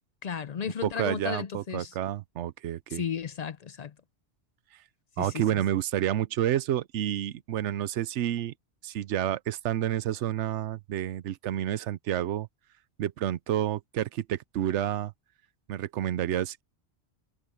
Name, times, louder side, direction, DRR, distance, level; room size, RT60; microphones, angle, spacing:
voice 1, 0.2-1.9 2.9-3.9 5.2-5.6, left 7 dB, 55° left, 0.4 m, -34 dB
voice 2, 0.8-3.0 5.2-8.5 8.8-12.5 13.0-15.1 15.7-16.6, right 11 dB, 90° right, 0.9 m, -29 dB
omnidirectional pair, 1.2 m